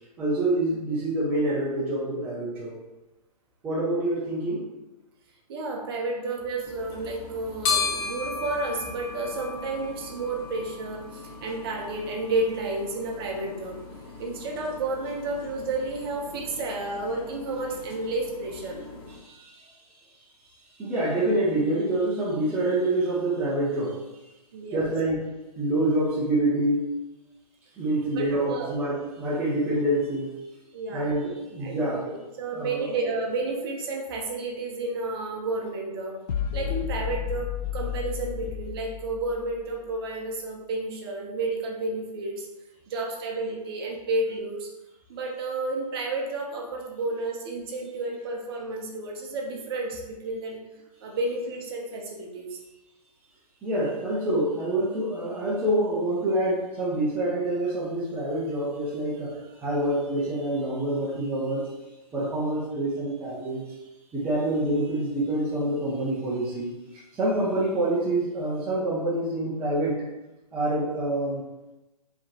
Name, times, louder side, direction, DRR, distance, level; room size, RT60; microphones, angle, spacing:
voice 1, 0.2-2.7 3.6-4.6 19.1-19.7 20.8-24.0 24.7-26.9 27.8-30.3 30.9-32.1 32.5-32.9 53.6-61.7 62.1-63.6 64.1-66.7 67.1-70.1 70.5-71.4, right 1 dB, 10° right, -8 dB, 0.6 m, -26 dB
voice 2, 5.5-13.8 14.2-18.8 24.5-24.9 28.1-28.7 30.7-31.1 31.6-36.2 36.5-42.5 42.9-44.7 45.1-50.6 51.0-52.6, right 2 dB, 35° right, 0 dB, 0.9 m, -31 dB
sound 1, 6.6-19.2, left 5 dB, 35° left, 0.8 m, -36 dB
sound 2, 36.3-39.7, left 10 dB, 90° left, 0.4 m, -32 dB
4.9 x 3.0 x 2.9 m, 1.0 s
hypercardioid pair, 150°, 20 cm